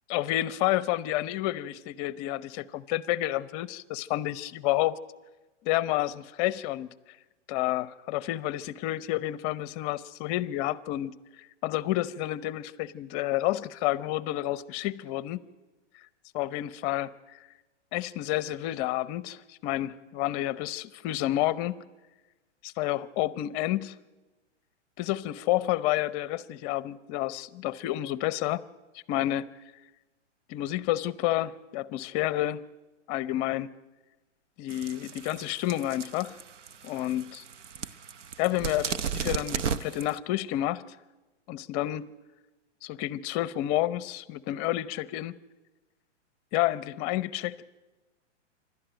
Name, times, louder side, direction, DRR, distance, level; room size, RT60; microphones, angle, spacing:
voice 1, 0.1-5.0 5.6-6.9 7.5-11.1 11.6-15.4 16.3-17.1 17.9-21.8 22.6-23.9 25.0-28.6 29.1-29.5 30.5-32.6 33.1-33.8 34.6-36.4 36.8-37.4 38.4-41.0 41.5-42.1 42.8-45.4 46.5-47.6, left 15 dB, 35° left, 0.7 m, -30 dB
sound 1, 34.7-40.2, right 7 dB, 75° right, 1.1 m, -35 dB
27.0 x 12.5 x 9.1 m
hypercardioid pair, 130°, 36 cm